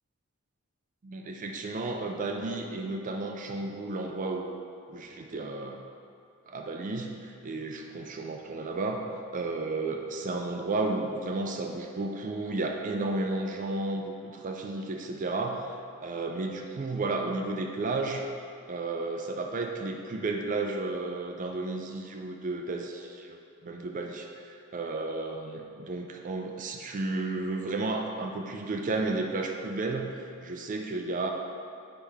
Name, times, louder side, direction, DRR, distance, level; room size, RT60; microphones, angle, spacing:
voice 1, 1.0-4.6 4.9-5.8 6.5-9.0 9.3-18.3 18.7-31.3, right 2 dB, 40° right, 2 dB, 0.4 m, -33 dB
7.2 x 4.8 x 3.4 m, 2.5 s
head